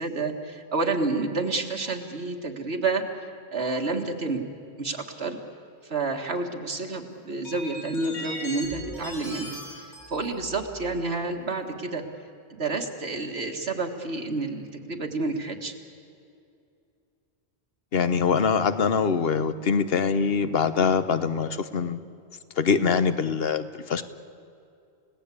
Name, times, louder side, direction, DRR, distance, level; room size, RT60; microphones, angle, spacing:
voice 1, 0.0-3.3 3.5-4.4 4.8-5.4 5.8-12.0 12.5-15.7, right 3 dB, 70° right, 3 dB, 2.1 m, -29 dB
sound 1, 7.5-11.2 12.0-12.1 14.1-14.2, left 1 dB, 90° left, 7.8 m, -39 dB
voice 2, 17.9-22.0 22.6-24.0, left 5 dB, 60° left, 12 dB, 1.2 m, -23 dB
30.0 x 17.5 x 8.5 m, 2.5 s
omnidirectional pair, 1.1 m